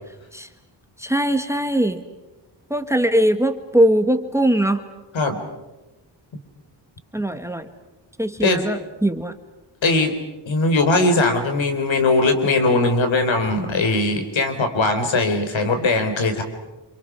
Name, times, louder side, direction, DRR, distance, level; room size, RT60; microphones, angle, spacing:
voice 1, 1.0-2.0 2.7-4.8 7.1-7.7 8.2-9.3, right 1 dB, 5° right, 9 dB, 1.5 m, -20 dB
voice 2, 9.8-10.1 10.5-16.4, left 2 dB, 85° left, 6 dB, 3.9 m, -20 dB
28.0 x 27.5 x 6.2 m, 1.1 s
wide cardioid pair, 105°, 45 cm